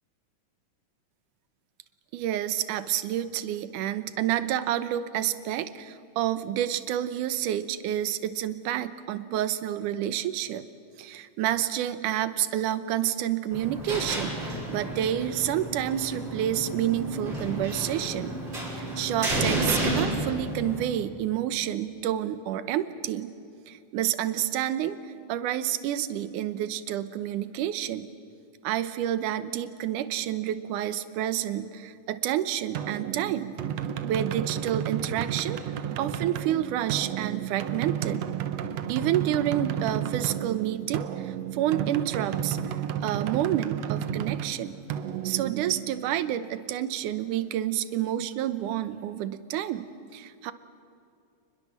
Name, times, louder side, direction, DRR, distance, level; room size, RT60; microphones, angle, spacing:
voice 1, 2.1-10.7 11.0-18.4 18.7-23.3 23.7-25.0 25.3-28.1 28.6-33.6 34.0-35.6 36.0-38.3 38.9-42.6 43.0-44.8 45.2-49.9 50.1-50.5, right 11 dB, 80° right, 13 dB, 2.5 m, -29 dB
sound 1, 13.5-20.8, right 1 dB, 35° right, 6.6 m, -31 dB
sound 2, 32.7-46.3, right 9 dB, 65° right, 1.9 m, -32 dB
28.0 x 21.5 x 7.4 m, 2.5 s
omnidirectional pair, 3.6 m